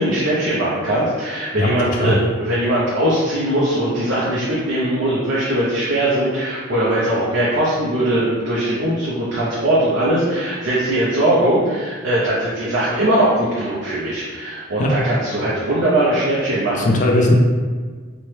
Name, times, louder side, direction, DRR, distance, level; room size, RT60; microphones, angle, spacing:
voice 1, 0.0-17.0, right 1 dB, 70° right, -8 dB, 0.6 m, -20 dB
voice 2, 1.6-2.2 14.8-15.0 16.7-17.3, left 1 dB, 35° left, 0 dB, 0.4 m, -18 dB
2.9 x 2.1 x 3.2 m, 1.5 s
head